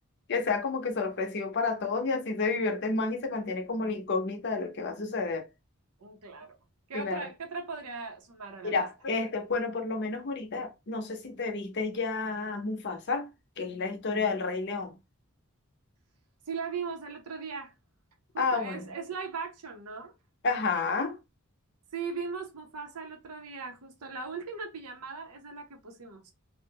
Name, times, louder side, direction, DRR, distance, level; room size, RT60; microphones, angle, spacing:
voice 1, 0.3-5.5 6.9-7.3 8.6-13.3 13.6-14.9 18.4-18.8 20.4-21.2, left 4 dB, 50° left, 0.6 m, -30 dB
voice 2, 6.0-6.6 6.9-8.8 16.5-17.7 18.3-20.1 21.9-26.3, right 5 dB, 85° right, 0.6 m, -38 dB
2.5 x 2.0 x 2.7 m
head